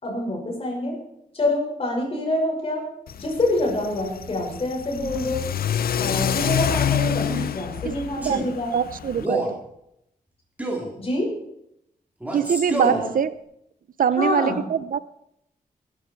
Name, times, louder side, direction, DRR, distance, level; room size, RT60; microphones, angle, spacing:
voice 1, 0.0-1.0 1.3-2.9 3.2-5.4 6.0-8.7 11.0-11.3 12.8-13.1 14.2-14.6, left 1 dB, 40° left, 5.7 m, -26 dB
Car / Accelerating revving vroom, 3.1-9.2, left 9 dB, 90° left, 0.6 m, -27 dB
Male speech man speaking, 7.2-7.5 8.2-8.5 9.2-9.6 10.6-10.9 12.2-13.0, right 1 dB, 10° right, 3.7 m, -28 dB
voice 2, 8.7-9.6 12.3-13.3 14.0-15.0, right 8 dB, 70° right, 0.6 m, -23 dB
20.0 x 11.5 x 4.6 m
wide cardioid pair, 150°, 15 cm